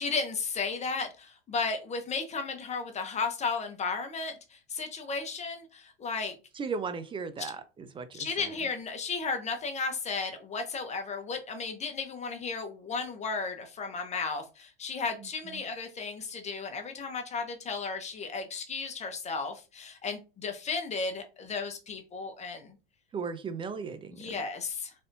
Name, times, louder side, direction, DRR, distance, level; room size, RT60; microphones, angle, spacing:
voice 1, 0.0-6.4 8.1-22.8 24.1-24.9, left 4 dB, 20° left, 0.8 m, -34 dB
voice 2, 6.5-8.3 15.5-15.6 23.1-24.4, right 5 dB, 15° right, 0.4 m, -36 dB
3.3 x 2.6 x 2.7 m
hypercardioid pair, 90°, 31 cm